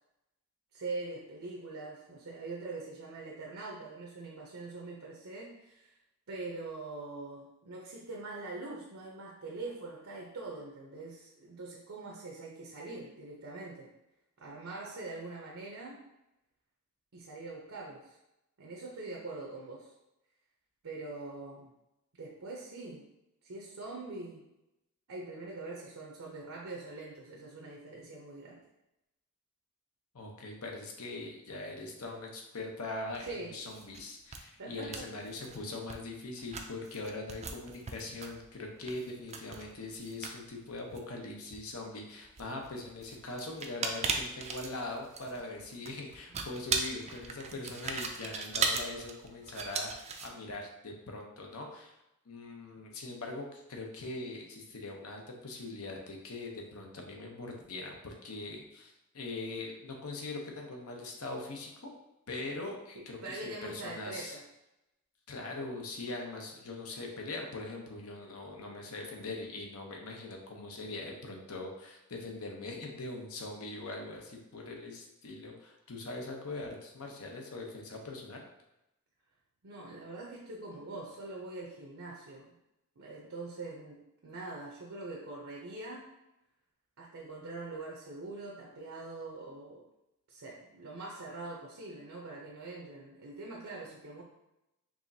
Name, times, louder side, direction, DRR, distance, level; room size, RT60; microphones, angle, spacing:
voice 1, 0.7-5.9 6.3-13.9 14.4-16.0 17.1-18.2 18.6-19.9 20.8-21.7 22.2-23.1 23.4-24.4 25.1-28.6 33.2-33.6 34.6-35.1 46.3-46.4 63.0-64.4 79.6-82.5 83.0-86.1 87.0-89.8 90.3-94.2, right 3 dB, 70° right, -2 dB, 0.7 m, -43 dB
voice 2, 30.1-51.9 52.3-61.9 62.3-64.4 65.3-78.4, left 2 dB, 75° left, 1 dB, 0.8 m, -42 dB
sound 1, 33.1-33.3 33.6-34.0 34.3-34.4 34.7-35.6 35.9-36.0 36.4-41.7 42.2-50.3, right 4 dB, 30° right, 0.4 m, -37 dB
4.8 x 3.0 x 2.7 m, 0.91 s
head